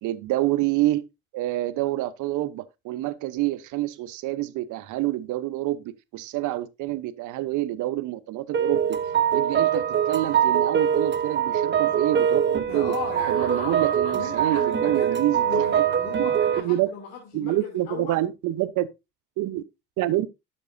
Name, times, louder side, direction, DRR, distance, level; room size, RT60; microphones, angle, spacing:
voice 1, 0.0-1.0 1.3-9.0 9.3-13.0 13.3-15.5 15.7-15.9 16.2-16.3 16.6-16.9 17.3-18.9 19.4-19.6 20.0-20.3, right 15 dB, 65° right, 1.0 m, -27 dB
sound 1, 8.5-16.6, right 9 dB, 35° right, 1.2 m, -23 dB
voice 2, 12.7-18.2, left 5 dB, 80° left, 2.9 m, -37 dB
11.5 x 7.4 x 2.7 m
hypercardioid pair, 65°, 33 cm